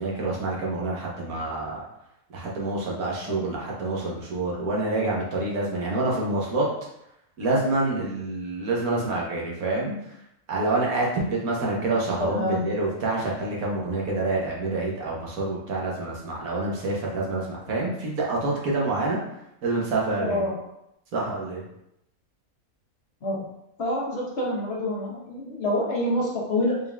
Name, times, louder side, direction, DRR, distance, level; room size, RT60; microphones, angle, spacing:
voice 1, 0.0-1.8 2.3-6.7 7.4-10.1 10.5-19.2 19.6-20.4 21.1-21.6, right 2 dB, 90° right, -3 dB, 1.5 m, -27 dB
voice 2, 12.2-12.6 20.3-20.5 23.2-23.4 23.8-26.8, left 1 dB, 50° left, -4 dB, 1.2 m, -27 dB
4.1 x 3.7 x 2.3 m, 0.81 s
omnidirectional pair, 1.4 m